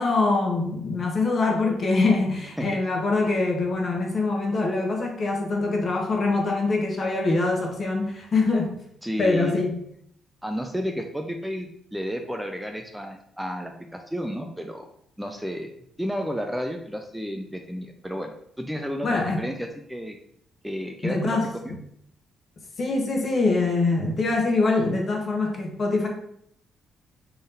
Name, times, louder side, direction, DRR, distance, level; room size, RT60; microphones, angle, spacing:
voice 1, 0.0-8.7 9.2-9.8 19.0-19.4 21.0-21.8 22.8-26.1, left 3 dB, 45° left, 1 dB, 0.9 m, -24 dB
voice 2, 9.0-9.6 10.4-14.9 15.2-15.7 16.0-20.2 20.6-21.8, equal, 5° right, 4 dB, 0.4 m, -32 dB
3.6 x 2.7 x 3.3 m, 0.70 s
cardioid pair, 90°, 0 cm